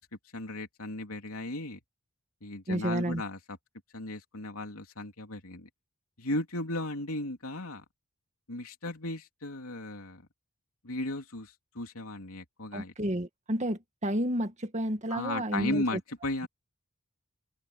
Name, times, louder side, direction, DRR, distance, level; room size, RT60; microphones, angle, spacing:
voice 1, 0.3-1.8 2.4-3.4 3.9-5.7 6.2-7.8 8.5-10.2 10.8-12.9 15.1-16.5, left 1 dB, 80° left, 3.3 m, -35 dB
voice 2, 2.7-3.2 12.7-16.0, right 1 dB, 35° right, 1.9 m, -31 dB
open air
head